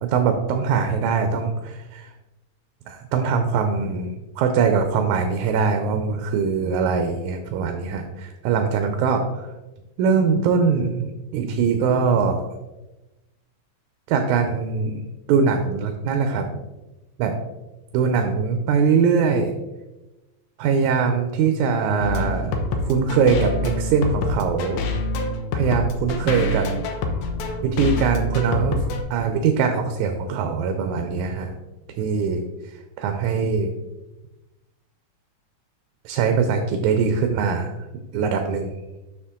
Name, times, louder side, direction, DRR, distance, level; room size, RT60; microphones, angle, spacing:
voice 1, 0.0-2.1 2.9-9.5 10.0-12.5 14.1-15.0 15.3-16.5 17.2-17.3 17.9-19.5 20.6-22.5 22.9-24.8 25.5-26.9 27.6-28.8 29.1-31.5 31.9-32.5 33.0-33.7 36.1-37.7 38.1-38.7, right 5 dB, 85° right, 6 dB, 2.1 m, -22 dB
sound 1, 22.0-29.0, left 2 dB, 80° left, 2.1 m, -26 dB
7.1 x 6.5 x 3.7 m, 1.0 s
omnidirectional pair, 3.3 m